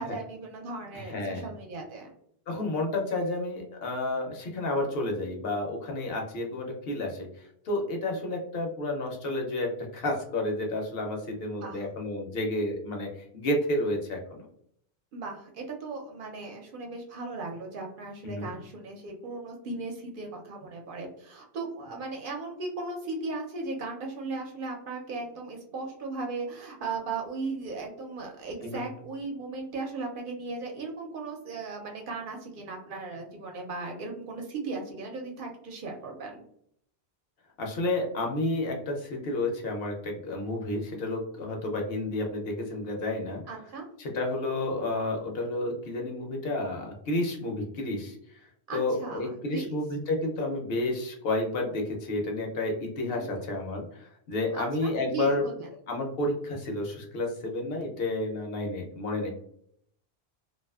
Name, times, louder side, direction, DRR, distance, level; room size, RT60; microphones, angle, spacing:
voice 1, 0.0-2.1 11.6-11.8 15.1-36.4 43.5-43.8 48.7-49.8 53.2-53.4 54.5-55.7, right 3 dB, 60° right, 1 dB, 0.7 m, -37 dB
voice 2, 0.9-1.5 2.5-14.5 18.2-18.5 28.6-28.8 37.6-43.4 44.0-48.4 48.7-55.4 55.9-59.3, left 2 dB, 70° left, 1 dB, 0.8 m, -31 dB
2.4 x 2.3 x 2.3 m, 0.68 s
omnidirectional pair, 1.1 m